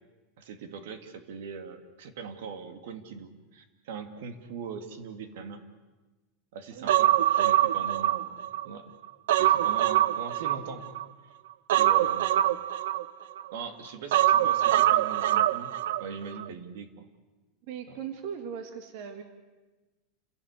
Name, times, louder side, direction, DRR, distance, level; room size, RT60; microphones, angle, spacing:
voice 1, 0.4-5.6 6.5-8.9 9.4-11.0 11.7-12.5 13.5-15.7 16.0-17.1 17.9-18.0, right 6 dB, 70° right, 9 dB, 2.3 m, -41 dB
voice 2, 6.8-7.1 17.7-19.2, right 8 dB, 50° right, 7 dB, 1.9 m, -39 dB
Human voice, 6.9-8.7 9.0-11.0 11.7-13.5 14.1-16.0 16.3-16.4, right 13 dB, 90° right, 0.7 m, -24 dB
29.0 x 16.5 x 8.3 m, 1.2 s
supercardioid pair, 175°, 0 cm